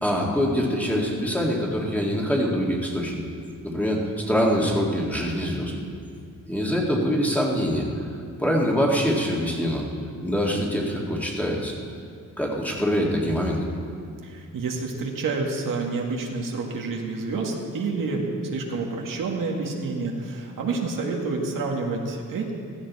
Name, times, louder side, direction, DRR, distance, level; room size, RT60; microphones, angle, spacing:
voice 1, 0.0-3.2 3.6-5.7 6.5-7.9 8.4-9.8 10.2-11.8 12.4-13.6, equal, 5° left, -3 dB, 2.0 m, -24 dB
voice 2, 14.2-22.5, right 3 dB, 75° right, 0 dB, 2.0 m, -28 dB
16.0 x 14.0 x 4.2 m, 2.3 s
cardioid pair, 120°, 33 cm